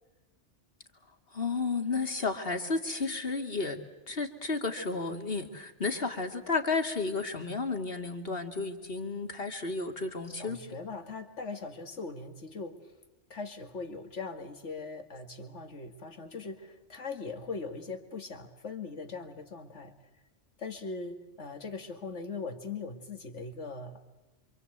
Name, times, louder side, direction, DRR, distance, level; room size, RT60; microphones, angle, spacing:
voice 1, 1.3-3.8 4.1-10.6, left 4 dB, 50° left, 5 dB, 2.7 m, -32 dB
voice 2, 10.3-12.9 13.3-19.9 20.6-24.1, left 4 dB, 75° left, 7 dB, 2.5 m, -40 dB
27.5 x 26.0 x 8.1 m, 1.1 s
omnidirectional pair, 1.2 m